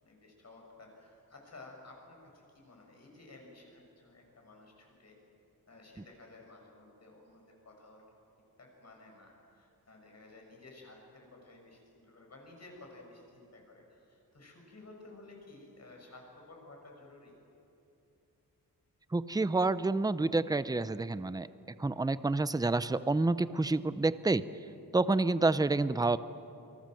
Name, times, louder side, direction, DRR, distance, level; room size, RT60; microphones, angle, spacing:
voice 1, 0.0-5.2 5.7-8.0 8.6-17.3, left 2 dB, 45° left, 0 dB, 6.8 m, -54 dB
voice 2, 19.1-21.5 21.8-24.4 24.9-26.2, right 3 dB, 10° right, 14 dB, 0.6 m, -28 dB
28.5 x 24.5 x 7.8 m, 2.8 s
wide cardioid pair, 155°, 35 cm